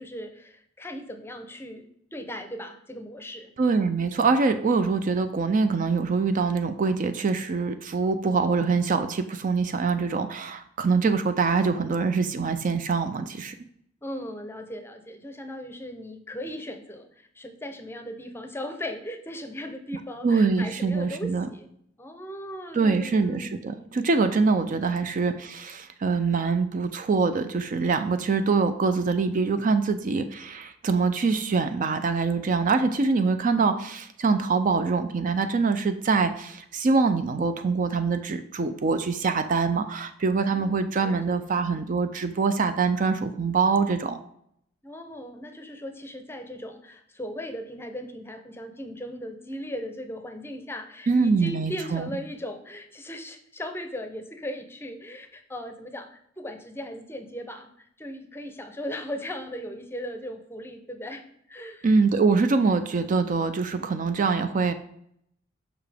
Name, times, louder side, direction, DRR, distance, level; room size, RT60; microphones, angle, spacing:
voice 1, 0.0-3.5 14.0-21.7 22.0-24.0 40.4-41.4 44.8-61.9, equal, 10° left, 7 dB, 0.6 m, -38 dB
voice 2, 3.6-13.5 20.2-21.5 22.7-44.2 51.1-52.1 61.8-64.7, right 4 dB, 40° right, 9 dB, 0.4 m, -24 dB
7.0 x 5.6 x 3.4 m, 0.70 s
head